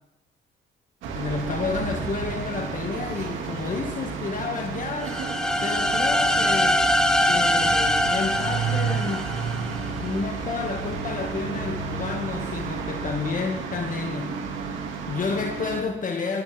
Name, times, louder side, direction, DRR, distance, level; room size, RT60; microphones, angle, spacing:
sound 1, 1.0-15.8, right 5 dB, 85° right, 2.0 m, -31 dB
voice 1, 1.1-5.2 5.6-6.9 7.3-9.3 9.9-14.4 15.1-16.4, left 4 dB, 40° left, 2 dB, 1.7 m, -30 dB
sound 2, 5.0-9.9, left 1 dB, 5° left, 1.1 m, -23 dB
21.5 x 11.5 x 3.4 m, 0.90 s
cardioid pair, 90°, 20 cm